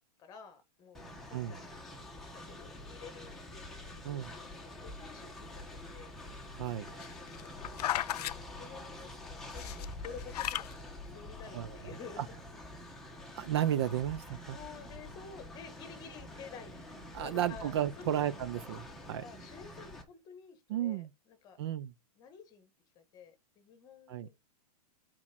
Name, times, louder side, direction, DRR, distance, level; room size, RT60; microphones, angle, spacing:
voice 1, 0.2-1.8 2.1-5.6 5.9-6.4 6.9-9.7 10.0-12.2 14.2-16.8 17.1-18.2 19.0-21.6 22.1-24.4, left 6 dB, 20° left, 1.5 m, -51 dB
Train, 0.9-20.0, left 1 dB, ahead, 1.2 m, -47 dB
voice 2, 6.6-6.9 11.5-11.8 12.2-12.3 13.4-14.6 17.1-19.2 20.7-21.1 21.6-21.9 24.1-24.3, right 11 dB, 40° right, 0.5 m, -33 dB
sound 1, 6.9-8.3 9.5-10.7 11.4-11.5, left 13 dB, 85° left, 0.4 m, -35 dB
6.1 x 4.4 x 5.9 m
supercardioid pair, 165°, 20 cm